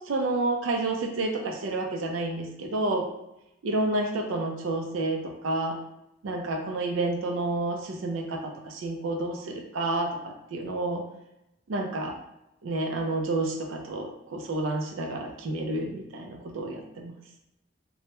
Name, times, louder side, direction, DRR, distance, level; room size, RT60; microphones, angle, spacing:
voice 1, 0.1-3.1 3.6-5.8 6.2-11.0 11.7-12.1 12.6-17.1, right 2 dB, 85° right, 2 dB, 0.4 m, -30 dB
2.2 x 2.0 x 2.9 m, 0.86 s
head